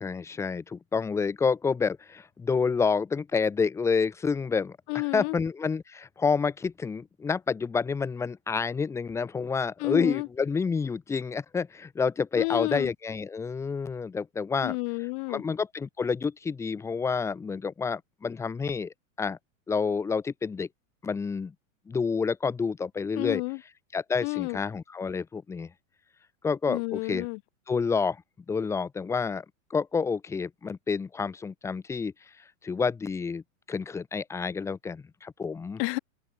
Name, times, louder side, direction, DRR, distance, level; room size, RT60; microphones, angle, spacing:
voice 1, 0.0-14.8 15.3-19.4 19.7-20.7 21.0-21.5 21.9-23.4 23.9-25.7 26.4-27.3 27.7-28.2 28.5-29.4 29.7-32.1 32.6-33.4 33.7-35.8, left 5 dB, 5° left, 0.8 m, -29 dB
voice 2, 4.9-5.4 9.8-10.3 12.4-12.9 14.6-15.4 23.2-23.6 24.2-24.6 26.7-27.4 35.8-36.0, left 38 dB, 40° left, 2.1 m, -30 dB
open air
supercardioid pair, 160°, 42 cm